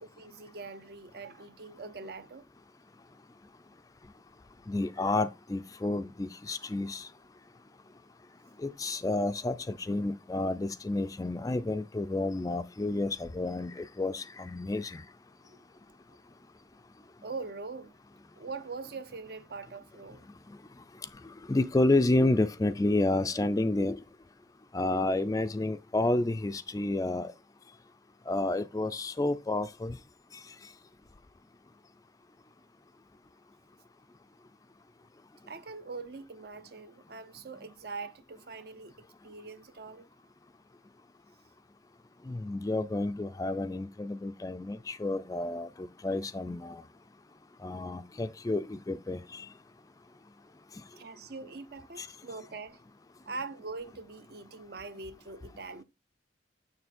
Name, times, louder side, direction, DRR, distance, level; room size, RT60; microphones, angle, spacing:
voice 1, 0.0-2.5 15.5-15.6 17.2-17.9 18.4-20.3 35.5-40.1 51.0-52.8 53.3-55.8, right 4 dB, 55° right, 0.7 m, -43 dB
voice 2, 4.7-7.1 8.6-15.0 21.5-24.0 24.7-27.3 28.3-29.9 42.3-46.8 47.6-49.5 52.0-52.1, left 2 dB, 20° left, 0.3 m, -30 dB
6.9 x 6.6 x 4.1 m
head